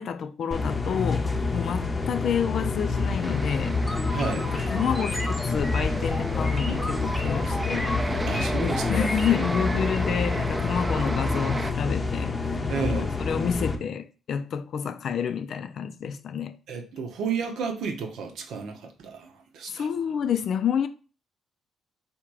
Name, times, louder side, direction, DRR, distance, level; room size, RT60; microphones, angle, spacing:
voice 1, 0.0-4.0 4.3-8.0 8.6-12.3 12.8-16.6 19.7-20.9, left 7 dB, 65° left, 0.4 m, -29 dB
sound 1, 0.5-13.8, left 4 dB, 25° left, 0.7 m, -28 dB
sound 2, 2.9-11.7, right 2 dB, 20° right, 0.5 m, -35 dB
sound 3, 3.9-9.8, left 1 dB, 5° left, 1.1 m, -34 dB
voice 2, 4.1-4.5 8.3-9.1 12.7-13.1 16.7-19.9, right 5 dB, 80° right, 0.9 m, -32 dB
3.5 x 2.9 x 4.7 m
cardioid pair, 90°, 0 cm